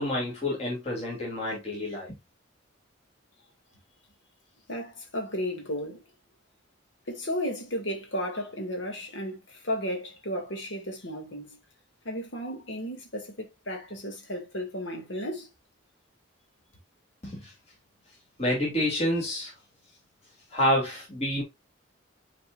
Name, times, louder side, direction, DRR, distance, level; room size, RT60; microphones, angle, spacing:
voice 1, 0.0-2.2 17.2-17.5 18.4-19.5 20.5-21.4, left 1 dB, 30° left, 2.9 m, -28 dB
voice 2, 4.7-6.0 7.1-11.6 12.0-15.5, equal, 60° left, 2.3 m, -34 dB
9.5 x 4.4 x 2.5 m
head